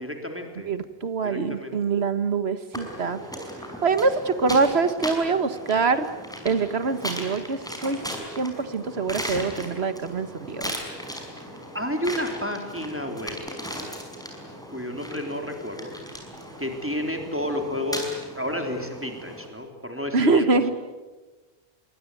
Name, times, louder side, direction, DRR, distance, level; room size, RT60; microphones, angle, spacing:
voice 1, 0.0-0.7 1.2-1.8 11.7-13.4 14.7-15.9 16.6-20.6, left 1 dB, 10° right, 3 dB, 3.7 m, -31 dB
voice 2, 0.7-3.2 3.8-6.1 6.5-8.0 8.4-10.7 20.1-20.7, right 4 dB, 85° right, 11 dB, 1.7 m, -24 dB
sound 1, 2.7-19.5, equal, 5° left, 5.3 m, -37 dB
26.5 x 23.5 x 9.3 m, 1.3 s
omnidirectional pair, 1.0 m